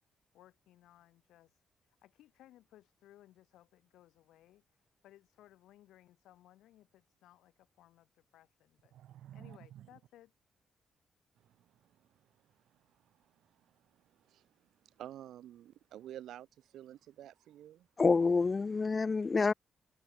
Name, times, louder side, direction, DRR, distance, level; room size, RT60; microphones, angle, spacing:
voice 1, 0.3-8.9 9.3-10.3, left 13 dB, 90° left, 5.3 m, -62 dB
voice 2, 8.9-9.9 11.4-12.1 12.4-17.9, right 12 dB, 85° right, 6.6 m, -52 dB
voice 3, 18.0-19.5, left 4 dB, 40° left, 0.7 m, -27 dB
cardioid pair, 65°, 0 cm